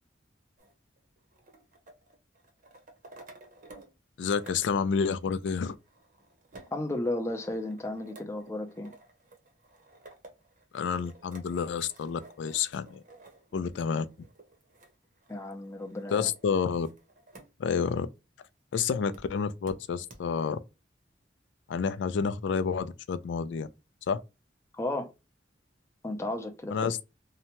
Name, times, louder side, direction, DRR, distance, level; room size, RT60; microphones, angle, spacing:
sound 1, 0.6-3.9 4.2-17.5 17.9-18.0 19.1-19.2 19.7-19.8 20.1-20.2, right 2 dB, 50° right, 0.8 m, -54 dB
voice 1, 4.2-5.8 10.7-13.0 13.5-14.1 16.1-16.9 17.6-18.1 18.7-20.6 21.7-23.7 24.1-24.2 26.7-27.0, left 6 dB, 90° left, 0.3 m, -29 dB
voice 2, 6.7-9.0 15.3-16.3 24.8-25.1 26.0-26.9, left 1 dB, 15° left, 0.5 m, -34 dB
2.8 x 2.1 x 2.8 m
head